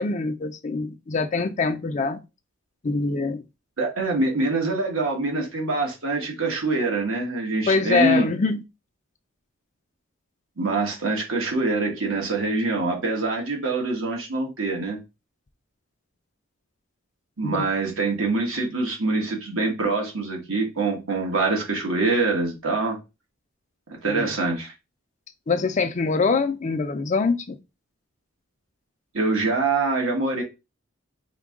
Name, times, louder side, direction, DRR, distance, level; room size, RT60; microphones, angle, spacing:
voice 1, 0.0-2.2 2.8-3.4 7.7-8.6 17.4-17.6 24.1-24.3 25.5-27.6, left 4 dB, 35° left, 0.5 m, -24 dB
voice 2, 3.8-8.3 10.6-15.0 17.4-23.0 23.9-24.7 29.1-30.4, right 3 dB, 80° right, 1.4 m, -24 dB
4.6 x 2.3 x 3.6 m
head